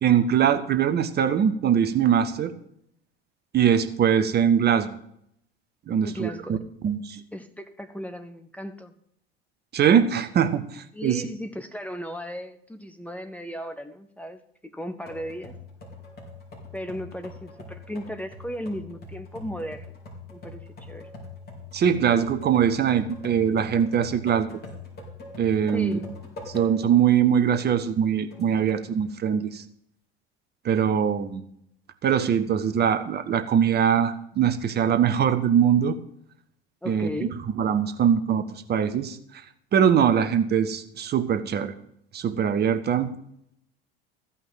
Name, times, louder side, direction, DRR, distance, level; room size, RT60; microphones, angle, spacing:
voice 1, 0.0-2.5 3.5-4.9 5.9-6.6 6.8-7.2 9.7-11.3 21.7-24.5 25.4-26.0 26.5-29.6 30.6-31.4 32.0-36.0 36.9-39.4 39.7-41.7 42.1-43.1, right 8 dB, 35° right, 10 dB, 1.1 m, -22 dB
voice 2, 6.0-6.6 7.1-8.9 10.9-15.5 16.7-20.0 20.3-21.1 25.7-26.1 36.8-37.4, equal, 5° left, 7 dB, 0.9 m, -36 dB
sound 1, 15.1-27.0 27.4-27.5 28.3-28.9, left 2 dB, 30° left, 4.7 m, -42 dB
15.0 x 5.6 x 8.6 m, 0.71 s
figure-of-eight pair, 70°, 31 cm